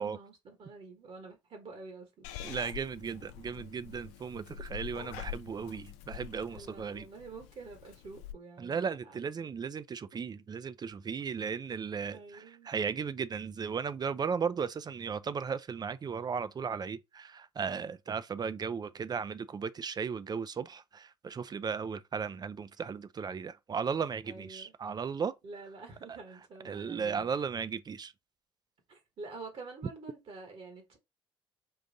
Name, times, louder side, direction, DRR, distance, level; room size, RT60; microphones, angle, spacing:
voice 1, 0.0-2.3 6.5-9.3 12.1-12.7 24.3-24.7 25.4-27.3 28.9-31.0, right 3 dB, 55° right, 1.3 m, -48 dB
Purr / Meow, 2.2-8.3, left 10 dB, 75° left, 0.4 m, -46 dB
voice 2, 2.4-7.1 8.6-25.3 26.6-28.1, right 6 dB, 35° right, 0.4 m, -36 dB
3.8 x 2.5 x 3.9 m
hypercardioid pair, 50°, 12 cm